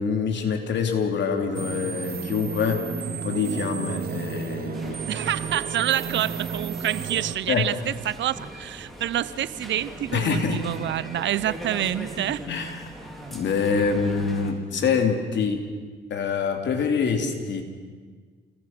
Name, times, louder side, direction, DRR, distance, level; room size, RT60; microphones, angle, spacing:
voice 1, 0.0-5.0 7.5-7.7 10.1-10.6 12.5-12.8 13.3-15.6 16.1-17.6, left 5 dB, 65° left, 4 dB, 3.5 m, -25 dB
sound 1, 1.5-7.4, right 7 dB, 50° right, 1.3 m, -33 dB
sound 2, 4.7-14.5, right 1 dB, ahead, 4.8 m, -40 dB
voice 2, 5.1-12.4, right 12 dB, 65° right, 18 dB, 0.8 m, -27 dB
29.0 x 19.5 x 6.1 m, 1.5 s
cardioid pair, 90°, 20 cm